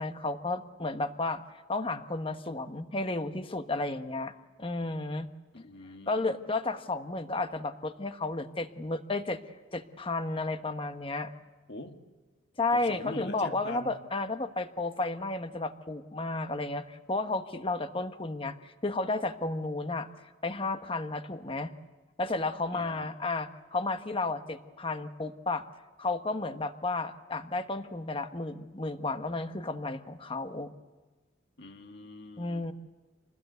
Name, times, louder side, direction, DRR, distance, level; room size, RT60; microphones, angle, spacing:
voice 1, 0.0-1.4 1.7-4.3 4.6-5.3 6.1-9.4 9.7-11.3 12.6-20.1 20.4-21.7 22.2-25.7 26.0-30.7 32.4-32.7, left 2 dB, 30° left, 9 dB, 1.1 m, -32 dB
voice 2, 5.5-6.4 11.7-12.0 12.7-13.9 22.7-23.1 31.6-32.7, left 2 dB, 60° left, 5 dB, 1.9 m, -43 dB
27.0 x 20.0 x 8.1 m, 1.3 s
head